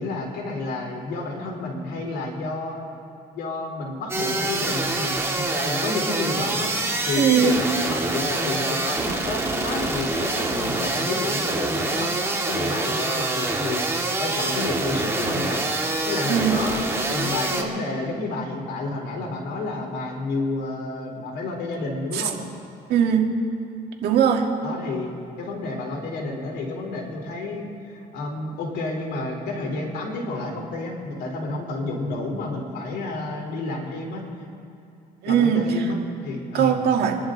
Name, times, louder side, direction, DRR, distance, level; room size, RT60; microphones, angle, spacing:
voice 1, 0.0-2.8 3.3-6.7 7.1-12.1 12.5-13.8 14.2-15.6 16.1-16.8 17.1-22.4 24.6-25.1 25.4-34.2 35.3-36.8, left 2 dB, 80° left, 0 dB, 3.7 m, -30 dB
sound 1, 4.1-17.6, right 2 dB, 15° right, 2.0 m, -26 dB
voice 2, 7.2-7.6 16.3-16.6 22.1-22.3 22.9-23.3 24.0-24.5 35.2-35.9 36.5-37.2, right 7 dB, 75° right, 2 dB, 1.9 m, -20 dB
26.5 x 11.5 x 3.9 m, 2.7 s
cardioid pair, 110°, 17 cm